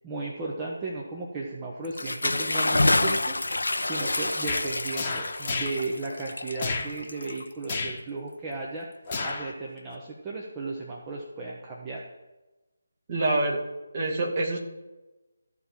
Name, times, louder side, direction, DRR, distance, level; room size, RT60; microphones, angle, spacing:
voice 1, 0.0-8.9 9.2-12.0, right 3 dB, 15° right, -3 dB, 1.2 m, -35 dB
Bathtub (filling or washing) / Splash splatter, 1.8-7.8, left 2 dB, 65° left, 0.7 m, -28 dB
sound 1, 4.5-4.7 4.9-5.8 6.6-6.9 7.7-8.0 9.1-9.5 9.9-10.0, left 3 dB, 30° left, 1.3 m, -31 dB
voice 2, 13.1-13.6 13.9-14.6, right 2 dB, 30° right, -1 dB, 2.2 m, -26 dB
13.5 x 4.5 x 7.4 m, 1.1 s
figure-of-eight pair, 155°, 0 cm